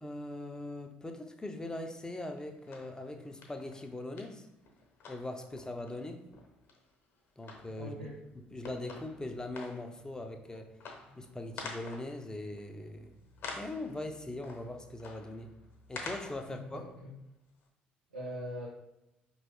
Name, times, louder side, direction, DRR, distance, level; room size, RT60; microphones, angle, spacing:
voice 1, 0.0-4.5 5.1-6.2 7.4-8.1 8.5-10.7 11.2-13.1 13.5-15.5 15.9-16.9, left 2 dB, 15° left, 5 dB, 0.6 m, -41 dB
sound 1, 1.6-1.8 2.3-17.1 17.6-17.7, left 3 dB, 55° left, 0.9 m, -49 dB
voice 2, 7.8-8.2 16.5-17.1 18.1-18.7, equal, 90° right, -10 dB, 0.9 m, -41 dB
4.7 x 3.1 x 3.1 m, 0.89 s
hypercardioid pair, 50°, 5 cm